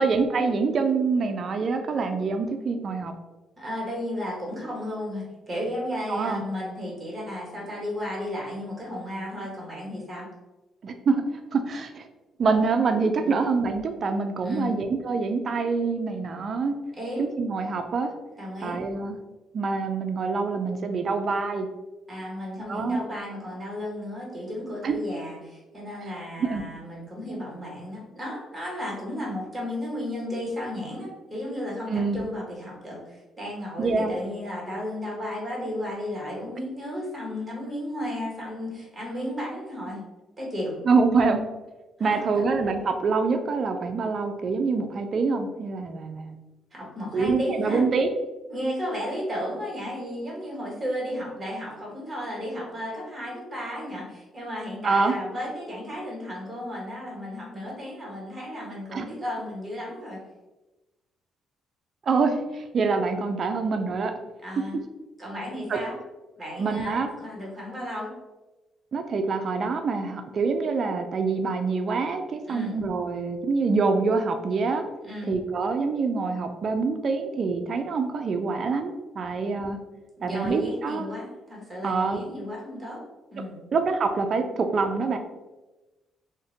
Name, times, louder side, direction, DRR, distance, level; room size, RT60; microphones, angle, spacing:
voice 1, 0.0-3.1 6.1-6.4 10.8-12.1 12.4-16.7 17.4-18.1 18.6-19.2 19.5-21.7 22.7-23.0 24.8-25.0 26.4-26.6 31.9-32.2 33.8-34.2 40.8-41.4 42.0-46.4 47.1-48.1 54.8-55.2 58.9-59.1 62.0-64.2 65.7-65.8 66.6-67.1 68.9-74.9 75.3-79.8 80.2-81.1 81.8-82.2 83.7-85.2, right 4 dB, 50° right, 6 dB, 0.3 m, -25 dB
voice 2, 3.6-10.3 13.2-13.4 14.4-14.8 17.0-17.3 18.4-18.8 22.1-40.0 40.4-40.7 42.0-42.5 46.7-47.8 48.5-60.2 64.4-64.8 65.2-65.9 66.4-68.1 72.5-72.8 75.0-75.3 79.3-79.5 80.2-83.0 83.3-83.6, left 1 dB, 20° right, -4 dB, 1.3 m, -34 dB
2.6 x 2.1 x 3.8 m, 1.1 s
cardioid pair, 90°, 0 cm